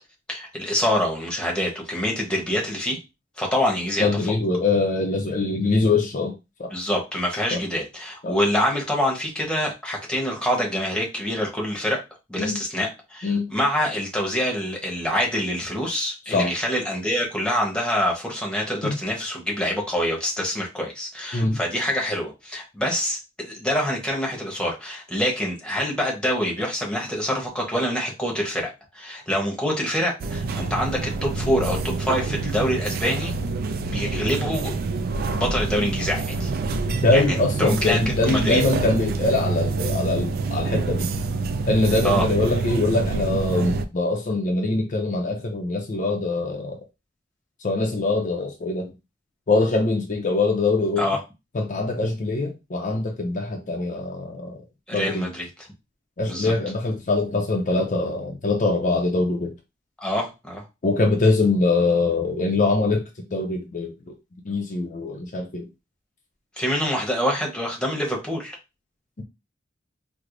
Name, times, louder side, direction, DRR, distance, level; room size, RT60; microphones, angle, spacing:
voice 1, 0.3-3.0 3.4-4.1 6.7-12.0 12.3-33.3 33.8-34.7 35.3-36.5 37.1-38.0 38.3-38.6 42.0-42.2 51.0-51.2 54.9-55.5 56.3-56.5 60.0-60.6 66.6-68.6, equal, 5° left, -1 dB, 0.9 m, -26 dB
voice 2, 4.0-6.3 6.6-6.7 7.5-7.6 8.2-8.4 12.4-12.6 13.2-13.5 16.3-16.5 18.8-19.0 21.3-21.6 37.0-41.2 41.7-46.8 47.6-48.9 49.5-51.0 51.5-54.6 54.9-55.3 56.2-59.5 60.8-64.1 64.4-65.6, left 3 dB, 40° left, 1 dB, 0.5 m, -23 dB
sound 1, 30.2-43.8, right 3 dB, 50° right, 0.3 m, -26 dB
4.6 x 2.0 x 2.5 m, 0.26 s
head